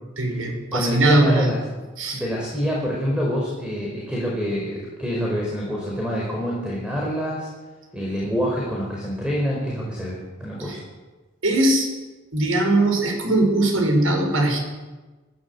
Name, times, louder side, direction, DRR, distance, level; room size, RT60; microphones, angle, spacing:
voice 1, 0.2-1.5 2.0-2.2 10.6-10.8 11.4-11.9 12.3-14.6, right 1 dB, 85° right, 3 dB, 6.0 m, -20 dB
voice 2, 0.7-1.6 2.1-7.5 7.9-10.8, equal, 5° right, -3 dB, 5.0 m, -26 dB
23.0 x 16.0 x 8.3 m, 1.2 s
head